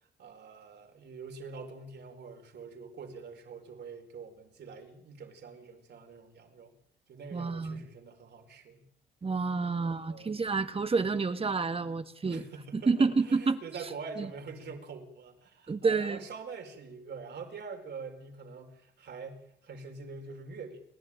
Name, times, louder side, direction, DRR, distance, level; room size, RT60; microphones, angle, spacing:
voice 1, 0.2-6.7 7.1-8.8 9.6-10.4 12.3-20.8, right 4 dB, 60° right, 5 dB, 4.7 m, -45 dB
voice 2, 7.3-7.8 9.2-12.4 12.7-13.6 14.2-14.3 15.7-16.2, right 4 dB, 30° right, 9 dB, 1.7 m, -29 dB
29.5 x 11.5 x 9.0 m, 0.72 s
cardioid pair, 90°, 20 cm